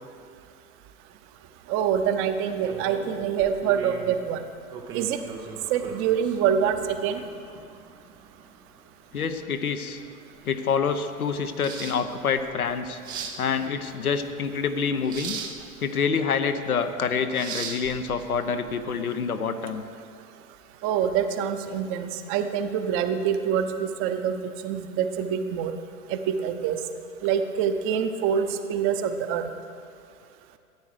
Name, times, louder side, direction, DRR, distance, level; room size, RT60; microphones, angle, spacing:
voice 1, 1.7-4.4 4.9-5.2 5.7-7.2 20.8-25.7 26.1-26.8 27.2-29.5, right 8 dB, 30° right, 9 dB, 0.7 m, -25 dB
sound 1, 2.6-18.8, right 5 dB, 10° right, 0.3 m, -40 dB
voice 2, 9.1-10.0 10.4-13.0 13.4-15.4 15.8-19.8, left 6 dB, 75° left, 8 dB, 0.9 m, -27 dB
13.5 x 9.2 x 4.9 m, 2.3 s
figure-of-eight pair, 95°, 44 cm